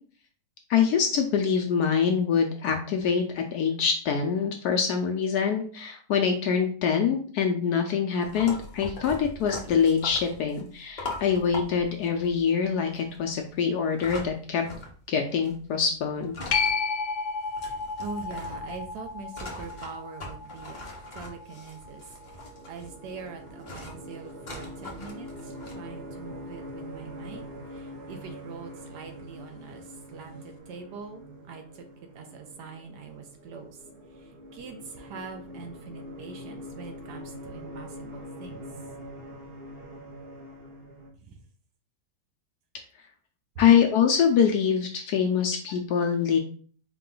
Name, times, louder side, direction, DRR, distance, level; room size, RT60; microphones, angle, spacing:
voice 1, 0.7-14.6 15.1-16.4 43.6-46.4, left 7 dB, 70° left, 3 dB, 1.0 m, -24 dB
sound 1, 8.2-15.1 15.3-16.8 17.0-17.1 17.4-25.8, left 2 dB, 45° left, 0.5 m, -41 dB
sound 2, 16.5-23.7 29.2-29.3, left 5 dB, 90° left, 1.4 m, -33 dB
voice 2, 17.7-20.8 21.1-22.0 22.7-27.4 27.7-31.9 32.1-33.8 34.1-38.6 41.2-41.4, right 5 dB, 70° right, 5 dB, 1.2 m, -43 dB
sound 3, 21.6-41.1, equal, 45° right, 0.8 m, -44 dB
4.7 x 2.2 x 3.8 m, 0.44 s
omnidirectional pair, 2.0 m